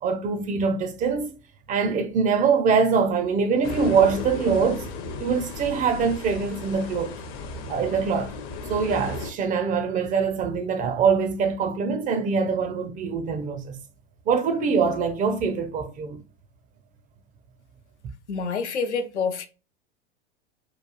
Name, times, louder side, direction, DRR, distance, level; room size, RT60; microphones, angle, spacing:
voice 1, 0.0-1.3 1.7-4.8 5.2-7.2 7.7-8.3 8.7-13.8 14.3-16.2, right 5 dB, 25° right, 0.4 m, -23 dB
sound 1, 3.6-9.3, left 3 dB, 40° left, 0.6 m, -35 dB
voice 2, 18.3-19.5, left 5 dB, 90° left, 0.5 m, -27 dB
2.9 x 2.2 x 2.2 m
hypercardioid pair, 90°, 34 cm